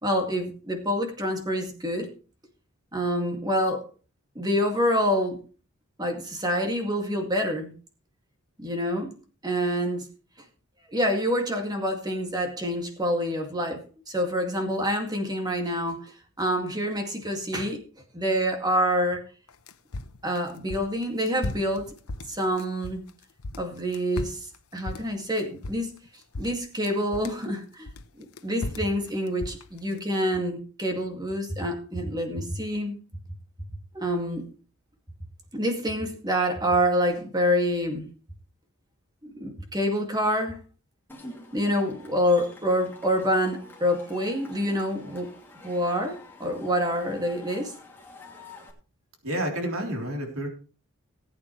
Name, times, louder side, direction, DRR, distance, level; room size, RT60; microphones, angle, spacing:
voice 1, 0.0-2.1 2.9-3.8 4.4-5.4 6.0-7.7 8.6-9.1 9.4-10.1 10.9-13.8 14.1-17.8 18.1-19.2 20.2-21.9 22.3-23.1 23.6-24.4 24.7-26.0 26.4-27.9 28.2-33.0 33.9-34.5 35.5-38.1 39.2-40.6 41.5-45.3 45.6-47.7, equal, 20° right, 4 dB, 2.2 m, -27 dB
sound 1, 19.5-23.1 23.4-26.1 26.3-27.4 27.9-30.0, left 2 dB, 80° left, 1.0 m, -36 dB
Cheering / Crowd, 41.1-48.7, left 2 dB, 10° left, 2.7 m, -48 dB
voice 2, 49.2-50.5, right 1 dB, 75° right, 2 dB, 3.5 m, -29 dB
19.0 x 8.8 x 3.2 m, 0.36 s
head